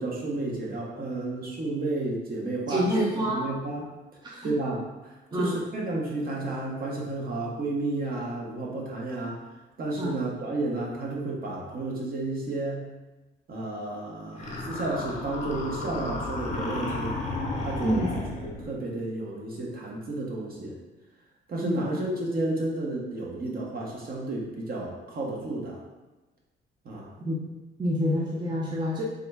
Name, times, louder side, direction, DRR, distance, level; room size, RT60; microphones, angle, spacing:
voice 1, 0.0-3.9 4.4-9.4 9.8-12.8 13.5-17.2 17.6-20.8 21.5-25.8 26.8-27.1, right 2 dB, 50° right, -3 dB, 0.9 m, -32 dB
voice 2, 2.7-3.4 4.2-4.5 5.3-5.5 10.0-10.1 17.8-18.1 21.6-21.8 27.3-27.4 27.8-29.0, equal, 20° right, -4 dB, 0.6 m, -27 dB
sound 1, 14.4-18.7, left 2 dB, 35° left, 0.7 m, -33 dB
3.6 x 2.1 x 3.4 m, 1.1 s
cardioid pair, 90°, 20 cm